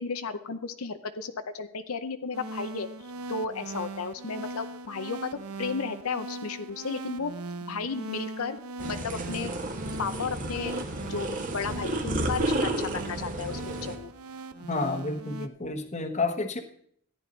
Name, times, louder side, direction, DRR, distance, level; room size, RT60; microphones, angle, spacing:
voice 1, 0.0-2.9 3.3-7.3 7.7-8.6 8.9-9.5 10.0-10.8 11.1-11.3 11.5-14.1, left 5 dB, 80° left, 9 dB, 0.7 m, -33 dB
sound 1, 2.3-15.5, right 2 dB, 85° right, 0.8 m, -40 dB
sound 2, 8.8-14.0, right 1 dB, 35° right, 1.4 m, -32 dB
voice 2, 14.6-16.6, left 3 dB, 30° left, 6 dB, 1.1 m, -30 dB
14.0 x 10.0 x 4.0 m, 0.64 s
head